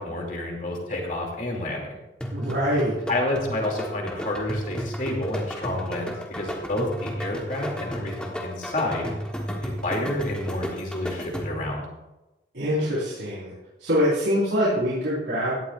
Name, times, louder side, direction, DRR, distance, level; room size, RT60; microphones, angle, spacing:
voice 1, 0.0-2.0 3.1-9.1 9.5-11.8, left 1 dB, 45° left, 0 dB, 2.7 m, -29 dB
sound 1, 2.2-11.7, equal, 5° left, 1.3 m, -33 dB
voice 2, 2.3-2.9 12.5-13.5 13.8-15.5, equal, 85° right, -9 dB, 4.6 m, -24 dB
17.0 x 11.5 x 2.5 m, 1.0 s
head